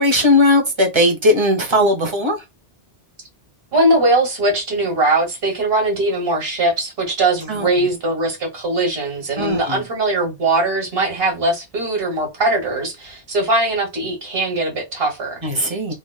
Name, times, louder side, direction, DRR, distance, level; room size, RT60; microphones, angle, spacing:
voice 1, 0.0-2.4 7.5-7.7 9.4-9.8 15.4-15.9, left 1 dB, 30° right, 1.0 m, -17 dB
voice 2, 3.7-15.9, right 2 dB, 65° right, 1.6 m, -20 dB
3.4 x 2.9 x 2.3 m
omnidirectional pair, 1.1 m